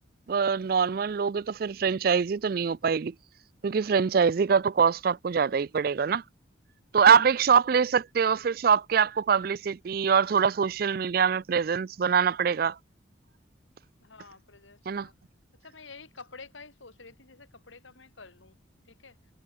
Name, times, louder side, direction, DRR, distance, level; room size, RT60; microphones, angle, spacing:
voice 1, 0.3-3.1 3.6-6.2 6.9-12.8 14.9-15.1, right 6 dB, 50° right, 0.4 m, -24 dB
voice 2, 14.0-15.1 15.6-18.6 18.8-19.2, left 4 dB, 80° left, 2.8 m, -49 dB
head